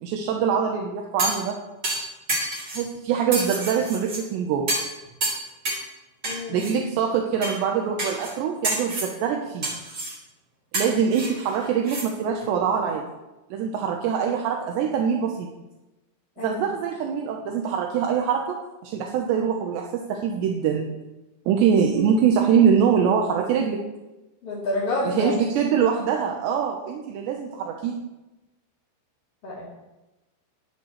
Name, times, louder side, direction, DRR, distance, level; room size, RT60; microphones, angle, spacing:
voice 1, 0.0-1.6 2.7-4.7 6.5-9.7 10.7-13.0 13.5-15.5 16.4-18.6 18.8-20.9 21.5-23.8 25.0-28.0, right 7 dB, 80° right, 1 dB, 3.2 m, -23 dB
sound 1, 1.2-1.5 1.8-2.8 3.3-4.2 4.7-4.9 5.2-5.9 6.2-6.7 7.4-7.6 8.0-8.3 8.6-9.1 9.6-10.2 10.7-12.1 12.4-12.5, right 2 dB, 25° right, 3.5 m, -28 dB
voice 2, 6.2-6.6 16.4-16.6 21.9-22.1 24.4-25.4 29.4-29.7, left 1 dB, 35° left, -8 dB, 3.8 m, -28 dB
19.5 x 10.5 x 3.3 m, 1.0 s
omnidirectional pair, 5.1 m